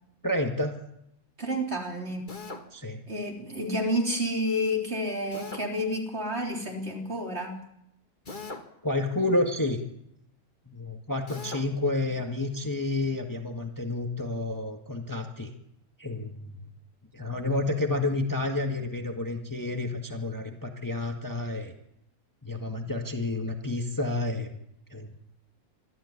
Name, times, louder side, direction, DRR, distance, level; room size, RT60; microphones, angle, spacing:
voice 1, 0.2-0.7 2.7-3.0 8.8-9.8 10.7-15.5 16.0-16.3 17.1-21.7 22.4-24.5 24.9-25.1, left 2 dB, 10° left, 3 dB, 1.7 m, -30 dB
voice 2, 1.4-2.4 3.1-7.6, equal, 40° right, 1 dB, 4.0 m, -30 dB
Drill, 2.3-2.7 5.3-5.7 8.3-8.7 11.3-11.7, left 3 dB, 30° left, 2.1 m, -39 dB
26.0 x 13.5 x 9.8 m, 0.79 s
omnidirectional pair, 1.7 m